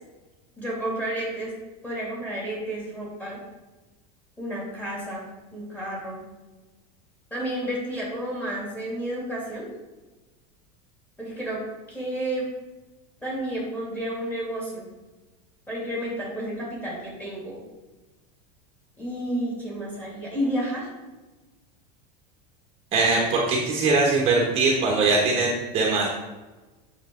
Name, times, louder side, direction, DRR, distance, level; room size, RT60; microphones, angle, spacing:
voice 1, 0.6-1.5 1.8-3.4 4.4-5.3 5.5-6.2 7.3-9.7 11.2-11.6 11.9-12.5 13.2-14.9 15.7-17.6 19.0-20.9, right 1 dB, 10° left, -5 dB, 2.6 m, -31 dB
voice 2, 22.9-26.1, right 3 dB, 30° right, -2 dB, 1.3 m, -21 dB
8.1 x 6.7 x 3.9 m, 1.2 s
supercardioid pair, 165°, 21 cm